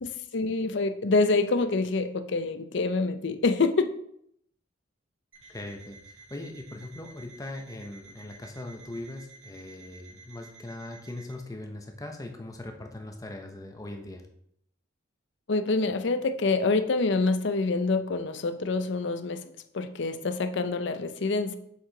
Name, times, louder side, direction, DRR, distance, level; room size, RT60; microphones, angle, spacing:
voice 1, 0.0-3.9 15.5-19.4 19.7-21.6, left 3 dB, 60° left, 10 dB, 0.5 m, -26 dB
Alarm, 5.3-11.4, right 3 dB, 70° right, 2.2 m, -52 dB
voice 2, 5.5-14.3, left 1 dB, 15° left, 3 dB, 0.6 m, -40 dB
7.0 x 4.7 x 3.8 m, 0.71 s
head